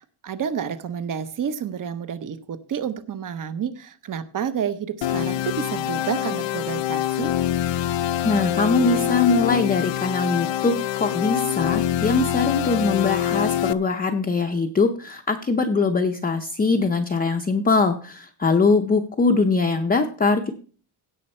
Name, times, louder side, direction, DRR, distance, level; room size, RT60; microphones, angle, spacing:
voice 1, 0.0-7.3, right 8 dB, 40° right, 12 dB, 0.8 m, -30 dB
sound 1, 5.0-13.7, left 12 dB, 65° left, 0.6 m, -25 dB
voice 2, 8.2-20.5, left 4 dB, 20° left, 3 dB, 0.6 m, -22 dB
16.5 x 6.4 x 4.3 m, 0.41 s
wide cardioid pair, 175°, 49 cm